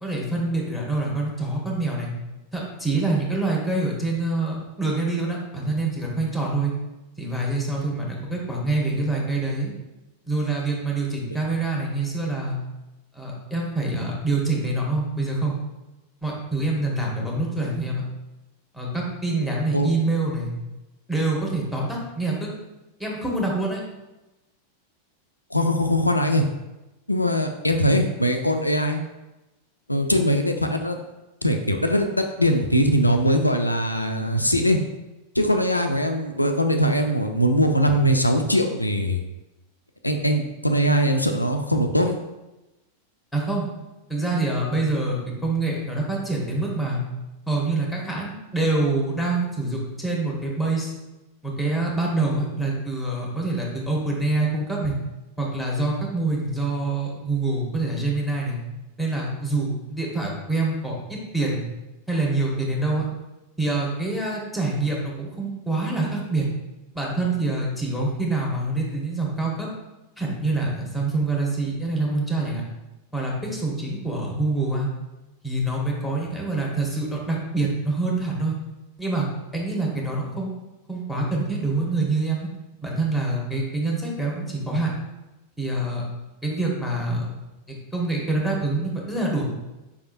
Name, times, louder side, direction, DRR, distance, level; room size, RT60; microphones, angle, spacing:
voice 1, 0.0-2.1 2.5-6.7 7.2-9.7 10.3-12.6 13.1-15.5 16.2-18.0 18.7-20.5 21.1-22.5 23.0-23.8 43.3-43.7 44.1-47.0 47.5-50.9 51.4-55.0 55.4-58.6 59.0-61.7 62.1-63.1 63.6-66.5 66.9-69.7 70.2-72.6 73.1-74.9 75.4-78.6 79.0-79.3 79.5-80.5 80.9-82.5 82.8-84.9 85.6-86.1 86.4-87.3 87.7-89.4, right 2 dB, ahead, -3 dB, 1.1 m, -26 dB
voice 2, 25.5-26.4 27.1-29.0 29.9-31.0 31.4-34.8 35.4-39.2 40.0-42.2, equal, 85° left, 5 dB, 0.3 m, -21 dB
4.8 x 3.4 x 2.5 m, 1.0 s
figure-of-eight pair, 90°, 0 cm